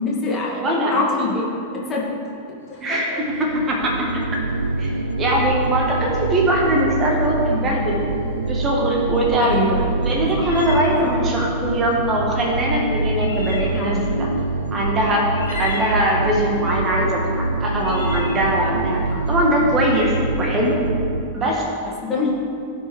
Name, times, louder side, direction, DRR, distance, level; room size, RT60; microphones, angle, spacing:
voice 1, 0.0-0.6 0.9-1.5 1.7-2.0 2.7-3.2 9.4-10.5 11.0-11.1 13.7-14.1 19.1-19.2 22.0-22.3, left 3 dB, 20° left, -5 dB, 2.1 m, -25 dB
voice 2, 0.6-0.9 2.8-3.1 3.4-3.9 4.8-4.9 5.2-8.0 8.5-9.6 10.0-14.3 14.7-15.2 15.5-19.0 19.3-20.8 21.3-21.6, right 1 dB, 25° right, -1 dB, 1.5 m, -21 dB
sound 1, 2.6-20.1, left 4 dB, 75° left, 2.2 m, -38 dB
sound 2, 3.2-21.2, right 2 dB, 80° right, 0.4 m, -24 dB
16.0 x 5.5 x 3.5 m, 2.5 s
figure-of-eight pair, 90°, 0 cm